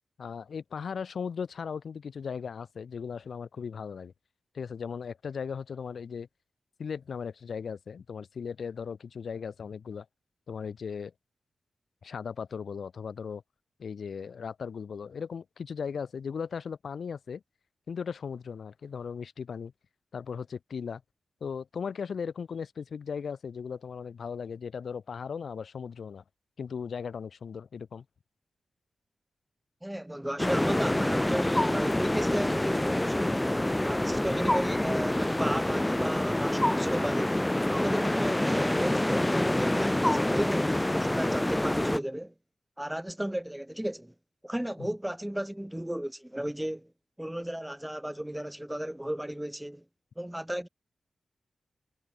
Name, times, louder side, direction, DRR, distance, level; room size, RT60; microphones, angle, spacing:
voice 1, 0.2-4.1 4.5-6.3 6.8-10.1 10.5-11.1 12.0-13.4 13.8-17.4 17.9-19.7 20.1-21.0 21.4-26.2 26.6-28.0 44.8-44.9, left 6 dB, 75° left, 0.6 m, -37 dB
voice 2, 29.8-33.5 33.8-37.4 37.7-42.3 42.8-44.1 44.4-46.9 47.2-49.8 50.2-50.7, right 1 dB, 5° right, 0.8 m, -34 dB
sound 1, 30.4-42.0, left 1 dB, 10° left, 0.5 m, -27 dB
wide cardioid pair, 95°, 0 cm